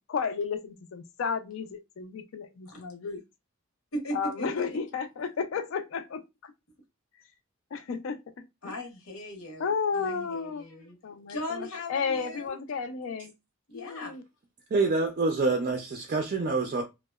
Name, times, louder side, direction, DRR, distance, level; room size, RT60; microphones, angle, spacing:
voice 1, 0.1-3.2 4.1-6.5 7.7-8.3 8.6-8.8 9.6-10.6 11.0-13.3 13.7-14.2, left 5 dB, 65° left, 0.4 m, -33 dB
voice 2, 3.9-4.6 8.6-11.0 11.3-12.6 13.7-14.1, equal, 85° left, 0.8 m, -38 dB
voice 3, 14.7-16.8, right 3 dB, 40° right, 0.3 m, -26 dB
2.8 x 2.0 x 2.2 m
head